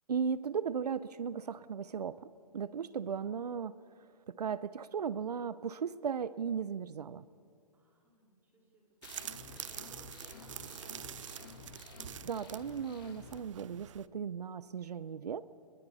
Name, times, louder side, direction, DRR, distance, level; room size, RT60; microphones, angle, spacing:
voice 1, 0.1-3.8 4.3-7.2 12.2-15.4, right 6 dB, 85° right, 16 dB, 0.7 m, -36 dB
voice 2, 7.7-11.6, right 1 dB, 10° right, -3 dB, 4.6 m, -63 dB
sound 1, 9.0-13.4, left 6 dB, 40° left, 1.7 m, -52 dB
sound 2, 9.0-14.1, right 10 dB, 50° right, 0.6 m, -46 dB
29.0 x 21.0 x 4.2 m, 2.3 s
hypercardioid pair, 155°, 20 cm